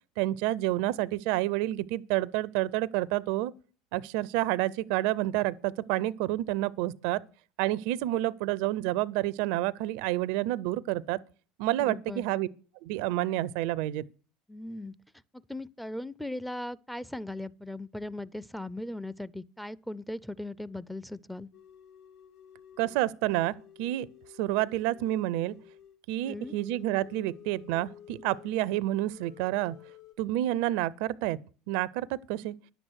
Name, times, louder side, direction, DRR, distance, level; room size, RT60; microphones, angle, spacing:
voice 1, 0.2-3.5 3.9-7.2 7.6-11.2 11.6-12.5 12.8-14.1 22.8-24.1 24.4-25.5 26.1-29.8 30.2-31.4 31.7-32.6, right 15 dB, 65° right, 0.5 m, -29 dB
voice 2, 11.8-12.2 14.5-14.9 15.5-21.5 26.3-26.6, left 1 dB, ahead, 0.5 m, -38 dB
sound 1, 21.5-23.1 23.4-28.8 29.1-30.2, left 9 dB, 65° left, 2.3 m, -52 dB
10.5 x 7.9 x 6.3 m
hypercardioid pair, 75°, 0 cm